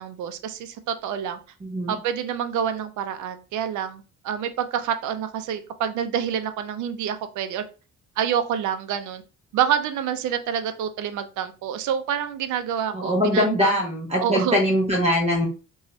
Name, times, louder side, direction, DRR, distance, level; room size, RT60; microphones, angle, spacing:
voice 1, 0.0-1.4 1.9-7.6 8.2-9.2 9.5-13.8 14.2-14.6, right 8 dB, 75° right, 9 dB, 0.5 m, -27 dB
voice 2, 1.6-2.0 12.9-15.5, equal, 20° right, -1 dB, 0.7 m, -22 dB
2.6 x 2.3 x 3.0 m, 0.33 s
cardioid pair, 90°, 30 cm